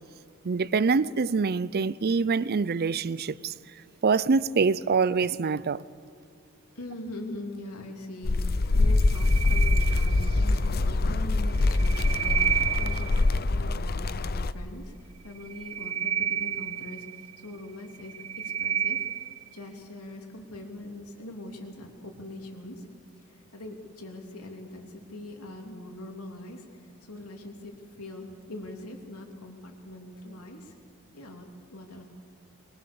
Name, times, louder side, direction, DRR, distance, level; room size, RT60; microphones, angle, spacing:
voice 1, 0.4-3.5 4.0-5.8, right 4 dB, 45° right, 0.5 m, -25 dB
voice 2, 6.7-19.0 19.5-22.8 23.3-26.6 27.0-30.7 31.1-32.1, left 1 dB, 85° left, 3.1 m, -42 dB
sound 1, 8.2-14.5, left 2 dB, 45° left, 0.6 m, -24 dB
sound 2, 8.9-10.6 11.5-13.4 15.4-17.5 17.9-19.5, right 9 dB, 90° right, 1.2 m, -31 dB
22.5 x 21.5 x 6.9 m
head